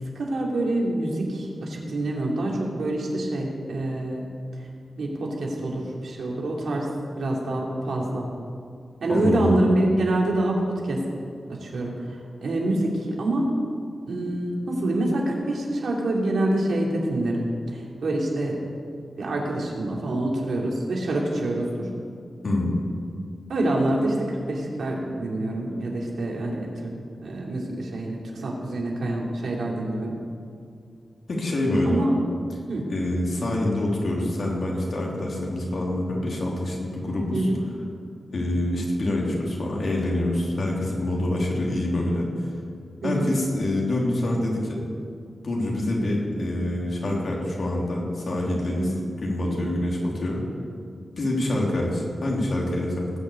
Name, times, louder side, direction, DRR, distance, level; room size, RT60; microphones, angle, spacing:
voice 1, 0.1-4.3 5.0-6.9 7.2-8.3 9.0-11.0 11.5-12.0 12.4-13.6 14.1-18.6 19.2-21.7 23.5-26.9 27.2-30.2 31.8-32.1 32.7-32.9 37.3-37.6 43.0-43.3 48.8-49.1 49.5-49.7, right 1 dB, 85° right, -2 dB, 2.9 m, -26 dB
voice 2, 9.1-9.6 22.4-22.7 31.3-32.0 32.9-37.5 38.3-42.3 43.0-44.8 45.4-48.9 49.2-50.5 51.2-53.1, left 1 dB, 60° left, -3 dB, 3.4 m, -26 dB
19.0 x 6.5 x 8.4 m, 2.3 s
wide cardioid pair, 125°, 0 cm